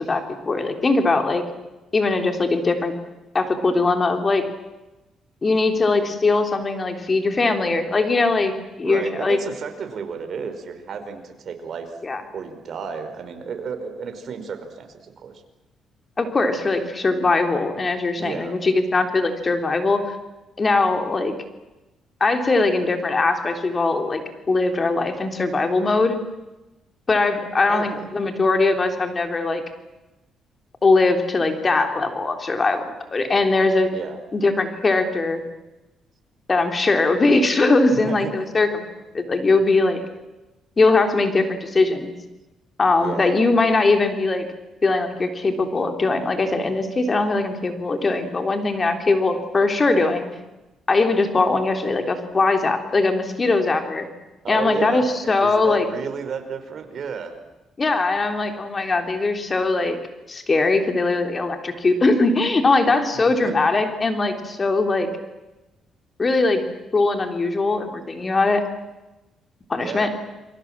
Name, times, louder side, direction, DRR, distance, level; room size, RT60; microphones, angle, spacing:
voice 1, 0.0-1.4 1.9-2.9 3.3-4.4 5.4-8.5 8.8-9.4 12.0-12.2 16.2-20.2 20.6-21.3 22.2-24.2 24.5-26.2 27.1-29.6 30.8-33.9 34.3-35.4 36.5-38.8 39.1-40.0 40.8-42.1 42.8-44.5 44.8-50.3 50.9-54.1 54.5-55.8 57.8-60.0 60.3-65.1 66.2-66.6 66.9-68.6 69.7-70.1, left 3 dB, 30° left, 5 dB, 3.6 m, -20 dB
voice 2, 8.8-12.0 12.3-15.4 18.2-18.6 27.7-28.1 33.9-34.2 37.9-38.3 43.0-43.3 54.4-57.3 63.2-63.3 69.7-70.1, right 6 dB, 55° right, 7 dB, 4.8 m, -32 dB
29.0 x 23.0 x 7.6 m, 1.0 s
cardioid pair, 90°, 0 cm